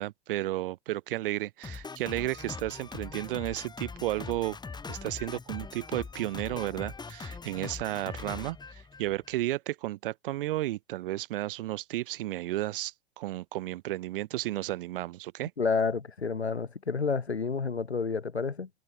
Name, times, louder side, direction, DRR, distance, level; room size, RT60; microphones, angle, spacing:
voice 1, 0.0-4.6 4.9-15.5, right 16 dB, 60° right, 0.7 m, -33 dB
Drum kit, 1.6-9.4, left 4 dB, 15° left, 3.4 m, -41 dB
voice 2, 15.6-18.7, left 5 dB, 90° left, 1.1 m, -29 dB
figure-of-eight pair, 90°, 31 cm